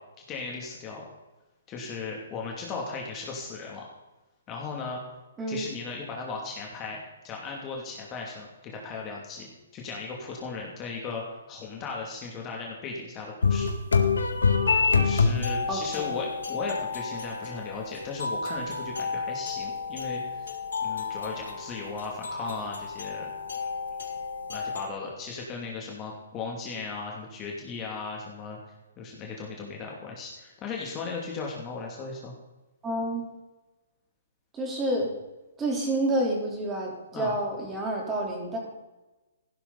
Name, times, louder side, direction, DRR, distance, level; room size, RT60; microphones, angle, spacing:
voice 1, 0.3-1.0 1.7-3.8 4.5-5.0 5.5-7.0 7.2-13.7 14.9-20.5 20.8-23.3 24.5-28.6 29.0-32.3 37.1-37.3, left 4 dB, 20° left, -1 dB, 2.8 m, -37 dB
sound 1, 13.4-24.9, left 5 dB, 85° left, 1.9 m, -28 dB
voice 2, 15.7-16.1 32.8-33.2 34.5-35.1 35.6-38.8, right 1 dB, 15° right, -2 dB, 4.0 m, -29 dB
15.5 x 12.5 x 4.2 m, 1.1 s
hypercardioid pair, 145°, 0 cm